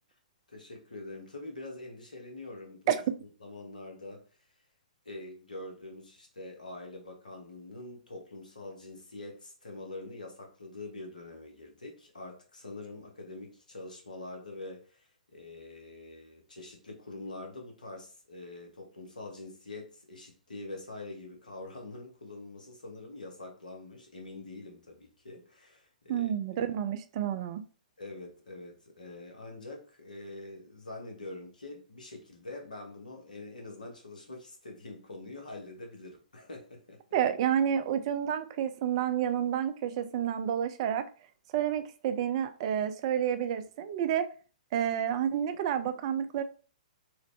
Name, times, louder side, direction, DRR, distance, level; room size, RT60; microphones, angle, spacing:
voice 1, 0.5-3.0 3.4-4.2 5.0-26.3 28.0-37.0, left 2 dB, 75° left, 1.1 m, -45 dB
voice 2, 26.1-27.6 37.1-41.1 41.5-44.3 44.7-46.4, right 9 dB, 40° right, 0.4 m, -29 dB
3.1 x 2.5 x 3.2 m
figure-of-eight pair, 115°, 4 cm